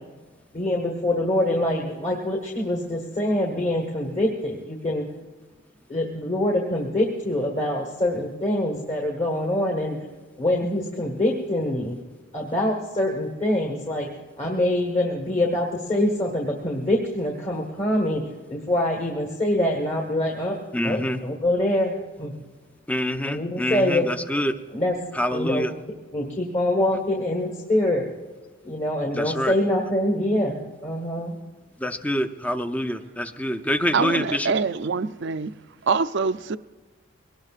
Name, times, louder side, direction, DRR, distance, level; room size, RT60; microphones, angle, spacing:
voice 1, 0.5-5.0 5.9-10.0 10.4-12.0 12.3-14.1 14.4-18.2 18.5-22.3 23.2-24.0 24.7-25.0 25.3-25.7 26.1-28.1 28.6-30.6 30.8-31.4, left 1 dB, 35° left, 1.5 m, -24 dB
voice 2, 20.7-21.2 22.9-24.6 25.1-25.7 29.1-29.6 31.8-34.5, equal, 5° left, 0.5 m, -26 dB
voice 3, 33.9-35.5 35.8-36.6, right 5 dB, 55° right, 0.5 m, -24 dB
22.5 x 18.5 x 2.5 m
head